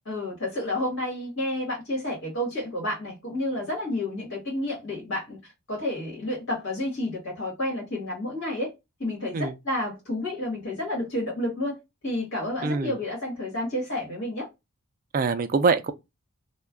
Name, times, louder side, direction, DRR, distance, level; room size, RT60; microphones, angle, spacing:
voice 1, 0.1-8.7 9.0-11.8 12.0-14.5, left 1 dB, 60° left, 1.2 m, -30 dB
voice 2, 12.6-13.0 15.1-15.9, right 4 dB, 40° right, 0.3 m, -24 dB
2.3 x 2.1 x 3.4 m
head